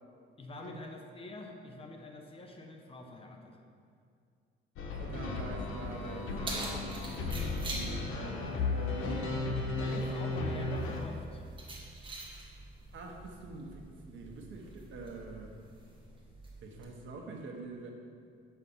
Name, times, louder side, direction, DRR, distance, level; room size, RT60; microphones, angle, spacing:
voice 1, 0.4-3.6 9.8-11.5, left 2 dB, 30° left, 2 dB, 0.8 m, -46 dB
sound 1, 4.8-11.0, left 3 dB, 90° left, 1.1 m, -35 dB
voice 2, 4.9-9.4 12.9-15.5 16.6-17.9, right 2 dB, 70° right, 1 dB, 1.2 m, -45 dB
Keys jangling, 5.8-16.8, right 2 dB, 25° right, 1.4 m, -46 dB
7.3 x 5.6 x 5.5 m, 2.3 s
cardioid pair, 145°, 20 cm